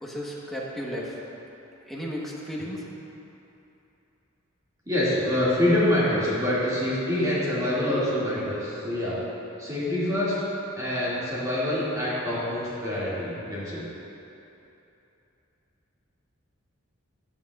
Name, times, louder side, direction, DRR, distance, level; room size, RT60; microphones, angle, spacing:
voice 1, 0.0-1.2 1.9-2.9, equal, ahead, -5 dB, 1.1 m, -34 dB
voice 2, 4.9-9.2 9.6-10.4 10.8-13.8, left 1 dB, 15° right, -9 dB, 2.1 m, -26 dB
14.0 x 8.6 x 2.4 m, 2.9 s
head